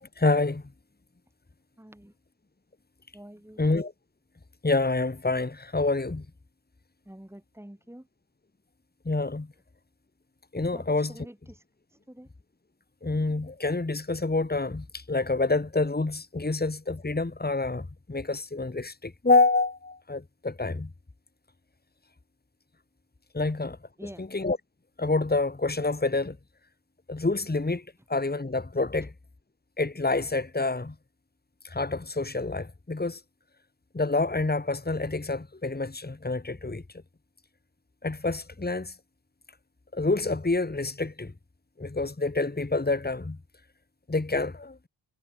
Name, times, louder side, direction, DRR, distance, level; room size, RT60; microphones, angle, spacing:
voice 1, 0.2-0.6 3.6-3.9 4.6-6.2 9.0-9.5 10.5-11.2 13.0-20.9 23.3-23.8 24.2-24.6 25.0-26.4 27.1-27.8 28.1-29.1 29.8-30.9 31.6-33.2 33.9-36.8 38.0-38.9 39.9-41.3 41.8-43.4 44.1-44.8, left 3 dB, 20° left, 2.7 m, -27 dB
voice 2, 1.8-2.1 3.1-3.6 7.1-8.1 10.7-10.8 11.1-11.6 12.1-12.3 24.0-24.2, right 1 dB, 5° right, 4.5 m, -46 dB
wide cardioid pair, 105°, 47 cm